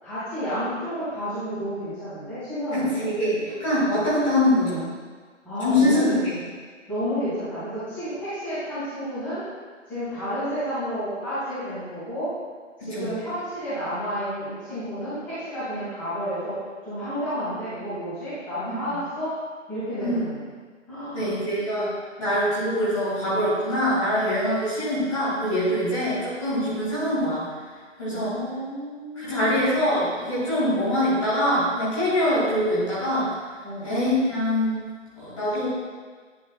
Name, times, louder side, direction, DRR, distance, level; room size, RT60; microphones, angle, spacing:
voice 1, 0.0-3.0 5.4-6.2 6.9-9.4 9.9-12.3 12.8-16.6 16.8-19.4 19.7-20.4 20.9-21.4 28.1-29.6 33.6-33.9 35.3-35.4, equal, 5° left, -18 dB, 2.0 m, -31 dB
voice 2, 2.7-4.9 5.6-6.3 12.8-13.1 18.7-18.9 20.0-20.2 21.1-21.9 22.2-27.5 28.0-28.4 29.2-33.3 33.8-34.8 35.2-35.7, left 1 dB, 25° left, -9 dB, 2.0 m, -24 dB
10.0 x 6.2 x 2.2 m, 1.5 s
figure-of-eight pair, 160°, 38 cm